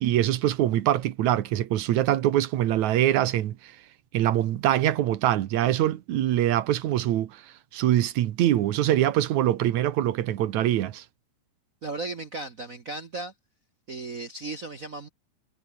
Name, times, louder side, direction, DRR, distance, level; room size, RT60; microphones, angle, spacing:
voice 1, 0.0-3.6 4.1-7.4 7.7-11.0, right 12 dB, 75° right, 2.4 m, -23 dB
voice 2, 11.8-13.3 13.9-15.1, right 2 dB, 50° right, 1.0 m, -35 dB
omnidirectional pair, 3.4 m